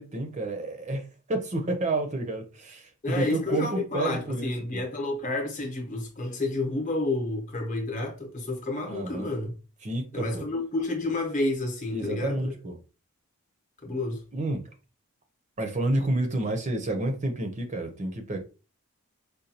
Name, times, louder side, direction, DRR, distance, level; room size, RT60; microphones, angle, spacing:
voice 1, 0.0-4.8 8.9-9.3 9.8-10.4 11.9-12.7 14.3-14.6 15.6-18.4, right 2 dB, 30° right, 0.6 m, -30 dB
voice 2, 3.0-9.5 10.1-12.5 13.8-14.2, left 2 dB, 35° left, 0.9 m, -30 dB
5.0 x 2.2 x 2.8 m
head